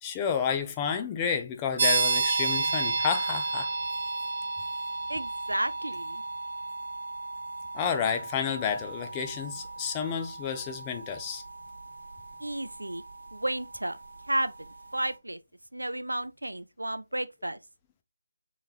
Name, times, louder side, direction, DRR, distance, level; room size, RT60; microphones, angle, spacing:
voice 1, 0.0-3.7 7.7-11.4, left 7 dB, 15° left, 0.6 m, -30 dB
sound 1, 1.8-14.3, right 3 dB, 45° right, 0.7 m, -32 dB
voice 2, 5.1-6.2 12.4-13.0 13.3-14.0 14.3-15.4 15.7-17.6, right 1 dB, 85° right, 0.4 m, -32 dB
6.3 x 3.0 x 2.4 m
figure-of-eight pair, 155°, 0 cm